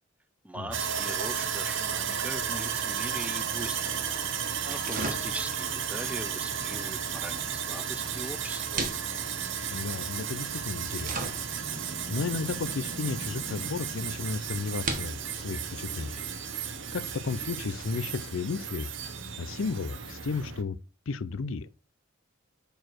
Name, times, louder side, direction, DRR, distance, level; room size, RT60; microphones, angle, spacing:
voice 1, 0.4-3.9 4.7-8.9, right 1 dB, 5° right, 0.5 m, -40 dB
Sawing, 0.7-20.6, right 7 dB, 65° right, 0.8 m, -34 dB
sound 1, 2.4-18.2, right 3 dB, 40° right, 1.3 m, -41 dB
voice 2, 9.7-11.4 11.7-16.2 16.9-18.9 19.4-20.8 21.1-21.7, left 4 dB, 70° left, 0.5 m, -34 dB
6.5 x 4.7 x 4.5 m
head